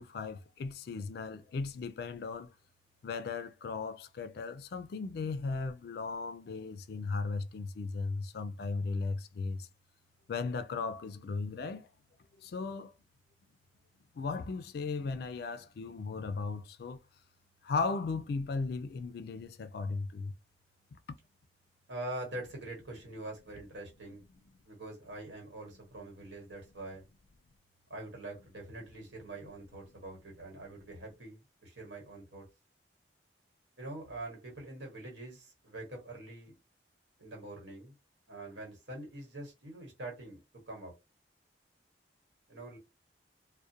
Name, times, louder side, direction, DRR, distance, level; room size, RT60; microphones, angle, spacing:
voice 1, 0.0-2.5 3.0-9.7 10.3-11.9 12.4-12.9 14.1-17.0 17.6-20.3, left 4 dB, 60° left, 0.3 m, -36 dB
voice 2, 21.9-24.2 24.6-27.1 27.9-32.5 33.8-36.6 37.2-37.9 38.3-40.4 40.7-40.9 42.5-42.8, right 2 dB, 85° right, 1.3 m, -44 dB
2.4 x 2.1 x 2.7 m
head